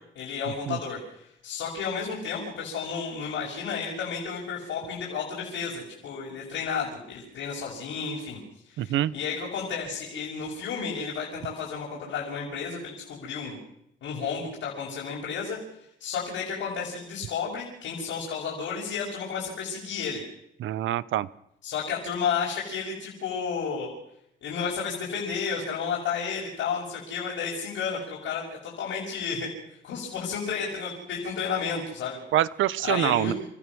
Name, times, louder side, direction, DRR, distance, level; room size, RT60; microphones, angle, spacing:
voice 1, 0.1-8.4 8.7-13.6 14.0-15.6 16.0-20.2 21.6-23.9 24.4-29.5 29.8-32.2 32.8-33.3, left 6 dB, 80° left, -3 dB, 6.6 m, -32 dB
voice 2, 8.8-9.1 20.6-21.3 32.3-33.3, right 13 dB, 80° right, 19 dB, 0.9 m, -25 dB
30.0 x 15.0 x 6.3 m, 0.76 s
cardioid pair, 90°, 20 cm